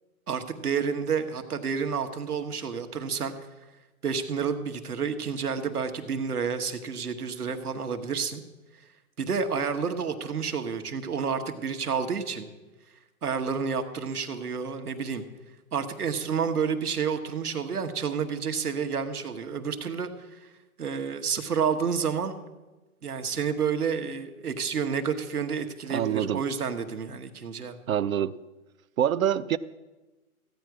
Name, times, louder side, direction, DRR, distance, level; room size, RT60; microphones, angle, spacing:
voice 1, 0.3-3.5 4.0-8.4 9.2-12.5 13.2-15.2 15.7-20.5 20.8-22.4 23.0-27.8, right 6 dB, 90° right, 7 dB, 1.3 m, -30 dB
voice 2, 25.9-26.4 27.9-28.3 29.0-29.6, right 10 dB, 65° right, 14 dB, 0.6 m, -25 dB
15.0 x 9.4 x 4.7 m, 1.1 s
hypercardioid pair, 145°, 44 cm